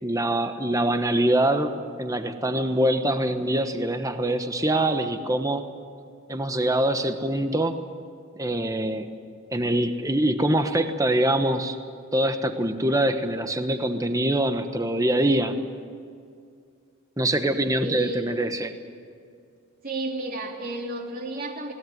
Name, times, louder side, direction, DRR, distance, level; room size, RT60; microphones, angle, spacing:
voice 1, 0.0-5.6 6.3-7.8 8.4-9.1 9.5-11.8 12.1-15.5 17.2-18.7, right 1 dB, 15° right, 8 dB, 1.2 m, -24 dB
voice 2, 17.8-18.3 19.8-21.7, right 2 dB, 40° right, 1 dB, 3.2 m, -32 dB
21.5 x 19.0 x 9.4 m, 2.3 s
head